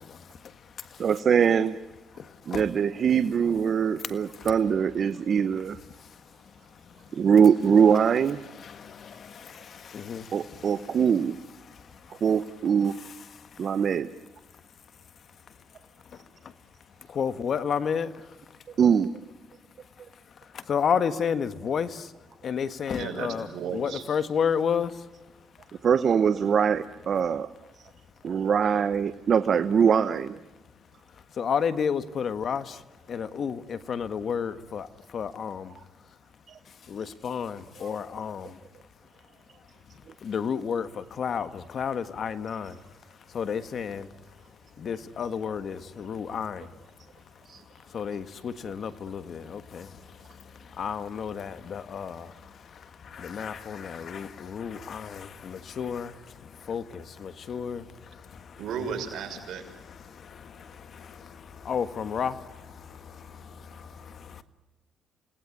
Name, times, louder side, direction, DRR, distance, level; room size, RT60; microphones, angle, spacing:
voice 1, 0.0-1.2 2.1-2.8 3.5-4.6 5.1-7.3 8.2-13.9 14.5-18.8 19.5-23.5 23.7-25.9 27.8-28.5 30.5-58.7 59.5-64.4, left 7 dB, 55° left, 1.5 m, -34 dB
voice 2, 1.0-1.8 2.5-5.8 7.1-8.4 10.3-11.4 12.2-12.9 13.6-14.1 18.8-19.1 25.8-27.5 28.2-30.4 36.5-36.6 47.5-47.6, right 7 dB, 55° right, 1.0 m, -22 dB
voice 3, 23.0-24.0 58.6-59.6, right 6 dB, 70° right, 6.2 m, -34 dB
29.0 x 19.5 x 9.6 m
cardioid pair, 90°, 0 cm